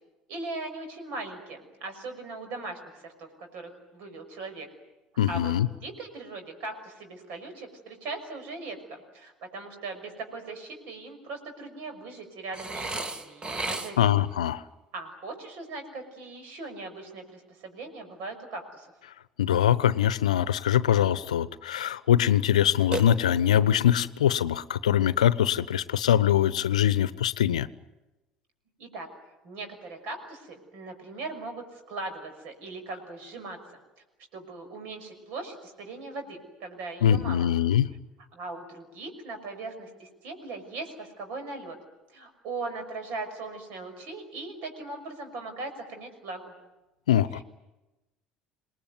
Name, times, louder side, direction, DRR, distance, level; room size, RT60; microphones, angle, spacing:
voice 1, 0.3-4.7 5.3-5.5 5.8-14.1 14.9-18.9 28.8-29.1 29.4-33.6 34.3-37.5 38.3-41.8 42.1-46.5 47.3-47.4, right 3 dB, 55° right, 6 dB, 6.1 m, -39 dB
voice 2, 5.2-5.7 14.0-14.6 19.4-27.7 37.0-37.9 47.1-47.4, left 10 dB, 75° left, 18 dB, 0.8 m, -23 dB
Burping eructation, 12.5-14.2 22.9-23.7, right 2 dB, 25° right, 2.1 m, -34 dB
27.5 x 20.5 x 9.4 m, 1.1 s
figure-of-eight pair, 60°, 4 cm